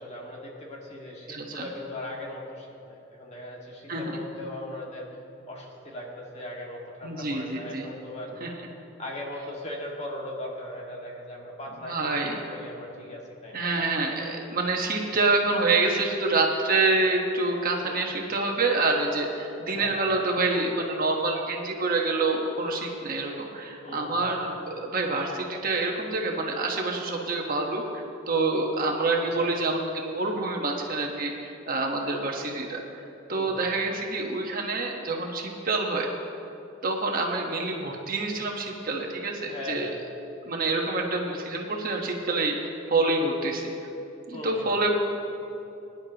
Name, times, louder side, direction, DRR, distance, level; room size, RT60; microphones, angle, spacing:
voice 1, 0.0-5.1 5.5-8.4 9.0-13.7 17.8-18.2 19.7-20.0 23.8-24.3 29.2-29.5 33.3-33.7 39.5-40.0 44.3-44.8, left 1 dB, 35° left, -2 dB, 1.9 m, -39 dB
voice 2, 1.3-1.6 3.9-4.0 7.0-7.9 8.4-8.5 11.8-12.4 13.5-32.8 33.3-36.1 36.8-39.9 40.5-43.6 44.3-44.9, right 3 dB, 45° right, 1 dB, 1.3 m, -27 dB
21.5 x 10.5 x 3.0 m, 2.9 s
head